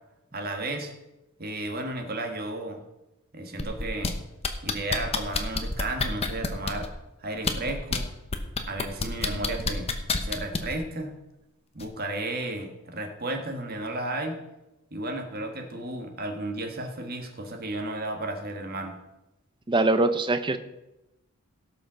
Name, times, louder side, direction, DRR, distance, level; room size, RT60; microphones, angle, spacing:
voice 1, 0.3-0.9 1.4-2.8 3.3-4.1 4.6-6.9 7.2-8.1 8.7-9.9 10.2-11.1 11.7-14.4 14.9-19.0, right 2 dB, 45° right, 4 dB, 1.7 m, -33 dB
sound 1, 3.6-4.1 4.4-6.9 7.4-8.0 8.3-10.8 11.8-11.9, left 4 dB, 30° left, 1.0 m, -27 dB
voice 2, 19.7-20.6, right 2 dB, 20° right, 10 dB, 0.7 m, -22 dB
17.0 x 5.7 x 6.3 m, 0.97 s
head